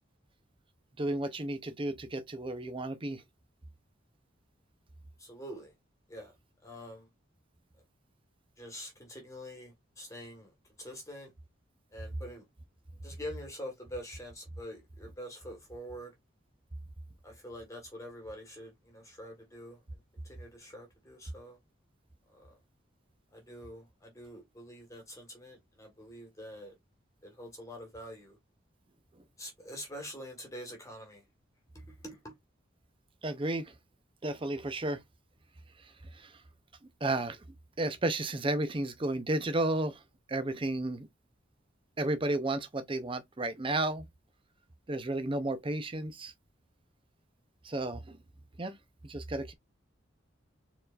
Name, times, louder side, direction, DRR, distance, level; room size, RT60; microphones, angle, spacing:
voice 1, 1.0-3.2 33.2-33.7 34.2-35.0 36.1-36.3 37.0-37.4 37.8-40.0 40.3-41.1 42.0-44.0 44.9-46.3 47.6-48.2 48.6-48.7 49.0-49.5, right 2 dB, 25° right, 0.6 m, -32 dB
voice 2, 5.2-5.7 6.1-6.3 6.6-7.1 8.6-10.5 10.8-11.3 11.9-12.4 13.0-16.1 17.2-19.8 20.2-21.6 22.3-22.6 23.3-26.7 27.2-28.4 29.4-31.2 31.9-32.3, equal, 15° left, 1.5 m, -45 dB
4.6 x 3.9 x 2.4 m
head